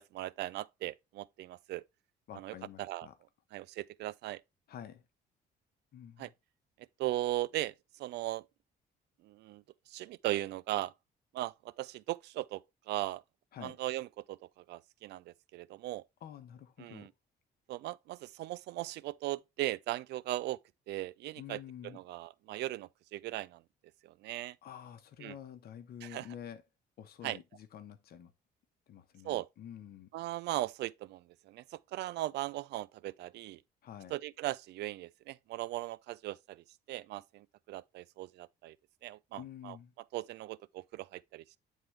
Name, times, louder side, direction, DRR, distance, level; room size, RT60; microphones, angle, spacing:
voice 1, 0.0-1.8 2.3-3.1 3.5-4.4 6.2-6.3 7.0-8.4 9.2-10.9 11.3-13.2 13.6-16.0 16.8-17.1 17.7-20.6 20.9-23.6 24.0-24.6 25.2-25.4 26.0-26.3 27.2-27.4 29.2-29.5 30.1-33.6 34.1-38.8 39.0-39.8 40.1-41.6, right 16 dB, 75° right, 0.4 m, -38 dB
voice 2, 2.3-3.1 4.7-5.0 5.9-6.3 13.5-13.8 16.2-17.1 21.4-22.0 24.6-26.6 27.0-28.3 28.9-30.1 33.8-34.2 39.4-39.9, left 9 dB, 60° left, 1.1 m, -48 dB
9.0 x 3.8 x 3.3 m
cardioid pair, 115°, 18 cm